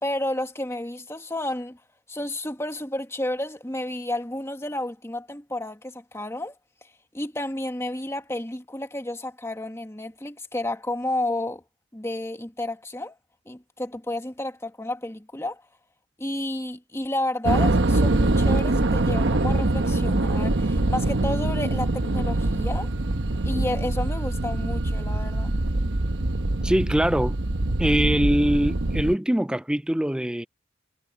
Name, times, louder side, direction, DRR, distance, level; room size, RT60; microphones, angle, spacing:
voice 1, 0.0-1.8 2.1-6.6 7.1-11.6 11.9-13.2 13.5-15.6 16.2-22.9 23.4-25.6, left 1 dB, 15° left, 1.8 m, -31 dB
sound 1, 17.4-29.1, right 2 dB, 80° right, 1.1 m, -24 dB
voice 2, 26.6-27.4 27.8-30.5, right 1 dB, 5° right, 0.4 m, -23 dB
head